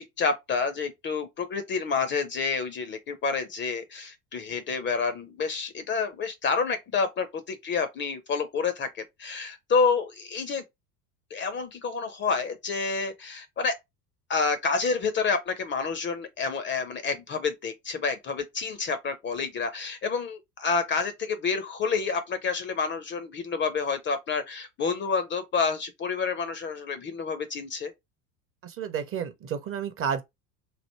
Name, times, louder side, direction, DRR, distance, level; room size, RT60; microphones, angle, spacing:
voice 1, 0.0-10.6 11.3-13.7 14.3-27.9, left 5 dB, 25° left, 0.5 m, -29 dB
voice 2, 28.6-30.2, right 7 dB, 30° right, 0.6 m, -31 dB
3.2 x 2.5 x 4.4 m
figure-of-eight pair, 70°, 47 cm